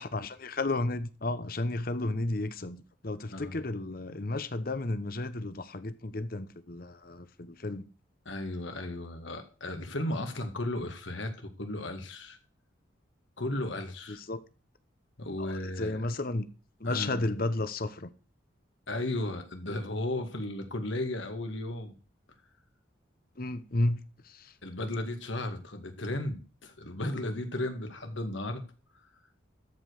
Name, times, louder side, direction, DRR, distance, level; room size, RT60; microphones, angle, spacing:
voice 1, 0.0-7.9 14.1-14.4 15.4-15.5 15.8-16.5 16.8-18.1 23.4-24.0 24.3-24.5, left 2 dB, 50° left, 0.9 m, -33 dB
voice 2, 8.3-12.4 13.4-14.2 15.2-16.1 16.8-17.2 18.9-22.0 24.6-28.6, left 1 dB, 75° left, 2.2 m, -35 dB
13.5 x 5.3 x 6.4 m
head